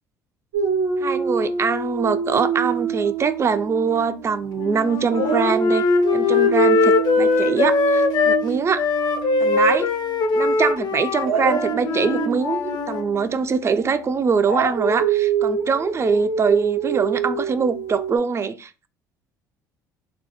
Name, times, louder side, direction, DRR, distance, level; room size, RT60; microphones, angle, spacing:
Dog, 0.5-4.7 5.1-10.1 11.2-18.2, right 5 dB, 85° right, 0.7 m, -26 dB
voice 1, 1.0-5.8 6.1-8.8 9.4-9.9 10.3-18.9, right 5 dB, 30° right, 0.3 m, -23 dB
Wind instrument woodwind instrument, 4.6-8.4 8.8-13.0, left 4 dB, 45° left, 0.4 m, -21 dB
3.2 x 2.1 x 2.9 m
hypercardioid pair, 60°, 10 cm